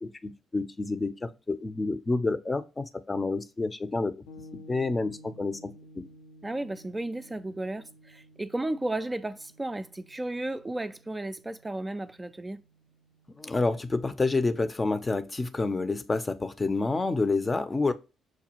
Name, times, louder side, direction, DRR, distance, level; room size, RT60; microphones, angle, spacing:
voice 1, 0.0-4.2 4.7-5.6 6.0-6.1 13.4-17.9, left 3 dB, 30° left, 0.5 m, -28 dB
sound 1, 4.3-13.9, left 1 dB, 85° left, 0.5 m, -53 dB
voice 2, 6.4-12.6, right 1 dB, 20° right, 0.3 m, -34 dB
6.1 x 2.3 x 2.8 m
hypercardioid pair, 45°, 0 cm